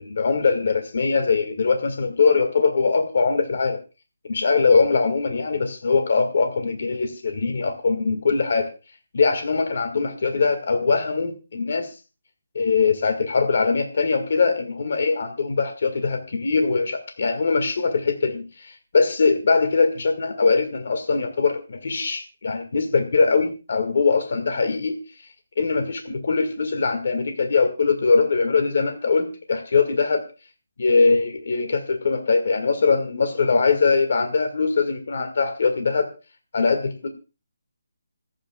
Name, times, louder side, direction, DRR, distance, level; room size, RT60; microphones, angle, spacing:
voice 1, 0.0-3.8 4.3-8.7 9.1-11.9 12.6-24.9 25.6-30.3 30.8-36.1 36.5-37.1, left 4 dB, 55° left, 6 dB, 1.9 m, -21 dB
26.5 x 8.9 x 2.3 m, 0.31 s
hypercardioid pair, 170°, 0 cm